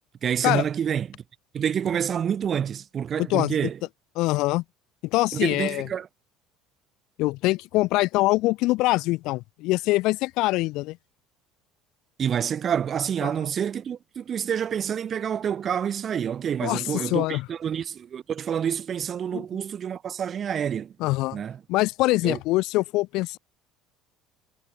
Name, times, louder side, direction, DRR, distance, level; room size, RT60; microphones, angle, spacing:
voice 1, 0.2-1.2 1.5-3.8 5.3-6.1 12.2-20.9 21.3-21.6 22.2-22.4, right 8 dB, 40° right, 3.5 m, -28 dB
voice 2, 4.2-4.6 5.1-5.9 7.2-11.0 13.2-13.3 16.6-17.4 19.3-19.4 21.0-21.4 21.7-23.4, left 20 dB, 70° left, 1.5 m, -24 dB
supercardioid pair, 80°, 0 cm